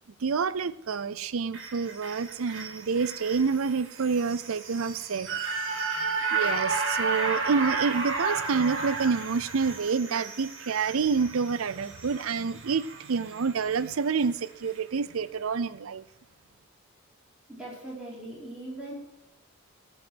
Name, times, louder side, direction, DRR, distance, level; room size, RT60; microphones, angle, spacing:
voice 1, 0.2-5.4 6.3-16.0, right 5 dB, 80° right, 16 dB, 0.5 m, -28 dB
sound 1, 1.5-13.9 14.2-14.3, right 4 dB, 60° right, 2.2 m, -33 dB
voice 2, 17.5-18.9, right 1 dB, 5° right, -6 dB, 4.4 m, -40 dB
14.5 x 5.5 x 9.2 m, 0.94 s
head